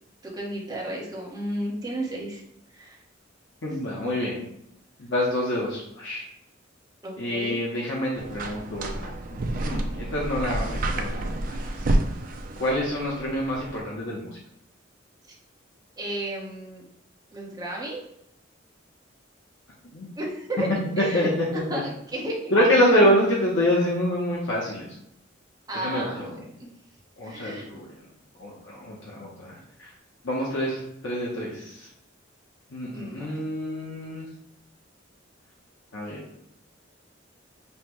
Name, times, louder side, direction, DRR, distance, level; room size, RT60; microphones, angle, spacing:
voice 1, 0.2-2.4 2.7-3.0 7.0-7.6 11.5-11.6 16.0-16.9 17.3-18.0 20.2-20.7 21.0-21.3 21.7-22.9 25.7-26.3 27.2-27.7 32.9-33.3, right 1 dB, 20° right, -3 dB, 0.9 m, -33 dB
voice 2, 3.6-4.4 5.0-6.2 7.2-11.7 12.6-14.3 19.9-20.1 21.0-21.3 21.7-21.8 22.5-24.9 25.7-26.4 27.2-27.8 28.4-29.9 30.2-31.9 32.7-34.2 35.9-36.2, equal, 65° left, -4 dB, 0.8 m, -26 dB
sound 1, 8.2-13.8, right 1 dB, 45° right, 0.4 m, -29 dB
5.5 x 2.1 x 3.0 m, 0.76 s
head